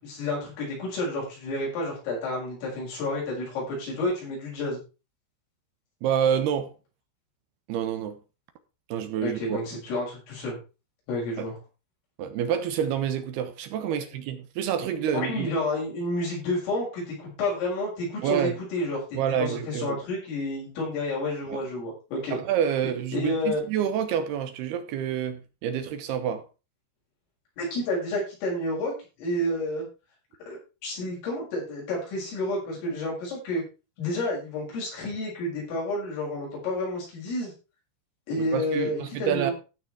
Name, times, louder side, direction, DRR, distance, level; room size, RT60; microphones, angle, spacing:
voice 1, 0.0-4.8 9.2-10.6 11.1-11.5 15.1-22.4 23.1-23.6 27.6-28.9 29.2-29.9 30.5-33.6 34.0-37.5 38.3-39.5, left 1 dB, 75° left, 9.5 m, -30 dB
voice 2, 6.0-6.7 7.7-8.2 8.9-9.6 11.4-11.5 12.2-15.6 18.2-18.6 19.1-20.0 21.5-21.6 22.3-26.4 38.4-39.5, right 9 dB, 70° right, 2.6 m, -28 dB
15.5 x 6.3 x 4.8 m
omnidirectional pair, 5.9 m